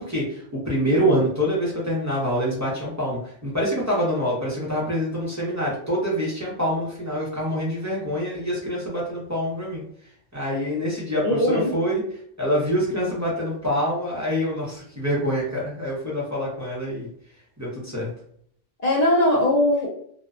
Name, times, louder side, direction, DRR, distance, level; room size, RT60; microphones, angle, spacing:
voice 1, 0.0-9.8 10.3-12.0 12.4-17.1 17.6-18.1, equal, 15° right, -7 dB, 0.6 m, -25 dB
voice 2, 11.2-11.7 18.8-19.9, left 1 dB, 55° left, -3 dB, 0.4 m, -20 dB
2.6 x 2.2 x 2.4 m, 0.63 s
omnidirectional pair, 1.4 m